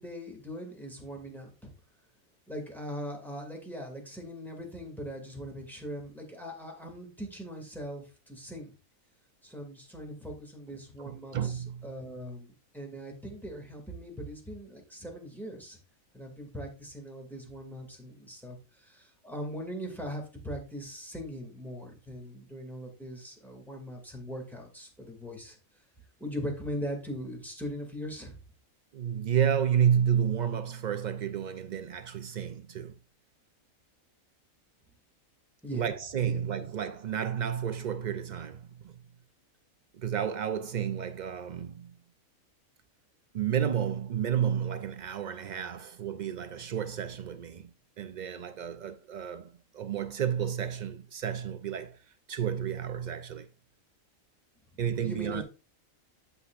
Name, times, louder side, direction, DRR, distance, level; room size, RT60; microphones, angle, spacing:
voice 1, 0.0-1.7 2.5-8.7 9.4-15.8 16.1-25.6 26.2-28.3 35.6-35.8 36.2-36.7 55.0-55.4, equal, ahead, 2.3 m, -40 dB
voice 2, 11.0-11.9 28.9-32.9 35.7-38.9 40.0-42.0 43.3-52.0 52.3-53.5 54.8-55.4, right 8 dB, 85° right, 0.4 m, -31 dB
8.2 x 8.0 x 2.5 m
omnidirectional pair, 1.4 m